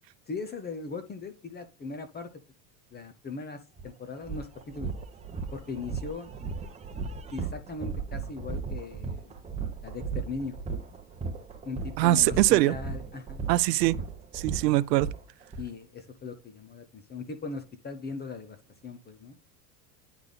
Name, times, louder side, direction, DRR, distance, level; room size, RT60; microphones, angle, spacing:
voice 1, 0.3-2.3 2.9-4.9 5.5-6.3 7.3-9.3 9.8-10.6 11.6-13.5 15.6-18.6 18.8-19.4, left 4 dB, 20° left, 0.8 m, -39 dB
sound 1, 3.8-3.9 4.2-15.6, right 4 dB, 15° right, 0.9 m, -36 dB
voice 2, 12.0-12.7 13.5-14.0 14.3-15.1, right 16 dB, 85° right, 0.7 m, -22 dB
9.9 x 3.6 x 4.0 m
supercardioid pair, 120°, 48 cm